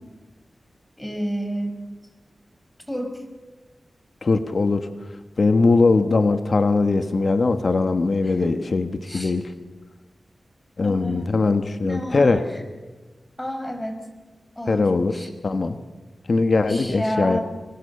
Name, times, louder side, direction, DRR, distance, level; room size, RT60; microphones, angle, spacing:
voice 1, 1.0-1.8 2.9-3.2 8.2-8.6 9.0-9.3 10.8-11.4 11.8-12.6 13.4-14.0 14.6-14.8 15.1-15.3 16.7-17.4, equal, 15° left, 5 dB, 5.1 m, -30 dB
voice 2, 4.2-4.9 5.4-9.5 10.8-12.4 14.7-15.2 15.4-15.8 16.3-17.4, left 3 dB, 60° left, 9 dB, 1.4 m, -20 dB
25.5 x 22.0 x 7.0 m, 1.3 s
wide cardioid pair, 60°, 0 cm